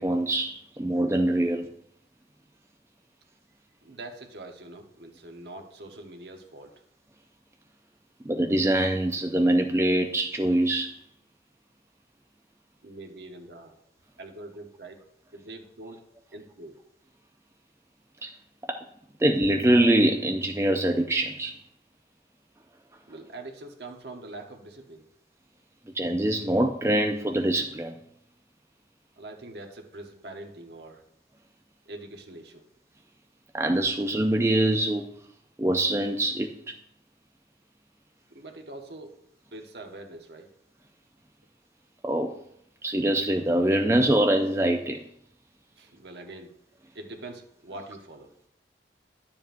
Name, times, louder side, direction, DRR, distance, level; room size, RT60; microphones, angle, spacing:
voice 1, 0.0-1.7 8.3-10.9 18.2-18.3 19.2-21.5 26.0-28.0 33.5-35.1 35.6-36.8 42.0-42.3 42.8-45.0, right 1 dB, 15° right, 4 dB, 0.4 m, -24 dB
voice 2, 3.8-6.7 12.8-13.8 14.2-15.0 15.3-16.0 16.3-16.8 23.1-25.1 29.2-31.0 31.9-32.6 38.3-39.2 39.5-40.5 45.8-46.5 46.9-48.3, right 2 dB, 70° right, 4 dB, 1.1 m, -43 dB
10.5 x 7.3 x 2.6 m, 0.72 s
head